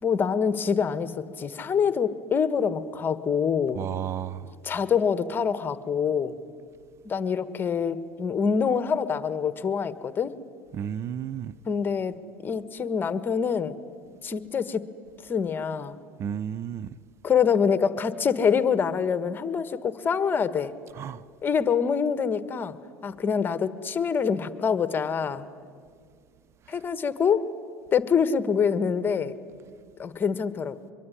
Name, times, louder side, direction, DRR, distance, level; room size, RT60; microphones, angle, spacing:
voice 1, 0.0-3.9 4.6-6.3 7.0-10.3 11.7-12.1 12.4-13.8 14.2-14.8 15.3-16.0 17.2-20.7 21.4-22.8 23.0-25.5 26.7-27.5 27.9-29.3 30.0-30.8, left 6 dB, 30° left, 1.5 m, -25 dB
voice 2, 3.7-4.5 10.7-11.5 16.2-16.9 21.0-21.2, right 9 dB, 45° right, 0.7 m, -32 dB
24.0 x 23.5 x 9.9 m
hypercardioid pair, 80°, 7 cm